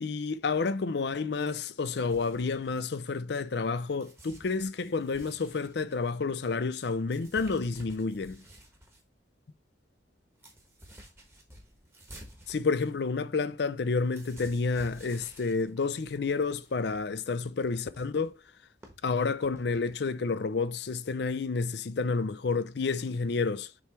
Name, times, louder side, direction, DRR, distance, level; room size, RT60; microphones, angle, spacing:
voice 1, 0.0-8.4 12.5-18.3 19.0-23.7, left 4 dB, 60° left, 0.5 m, -30 dB
sound 1, 2.1-3.6 4.0-9.0 9.5-9.6 9.8-19.9, right 1 dB, 15° right, 1.2 m, -53 dB
6.8 x 3.2 x 4.4 m
head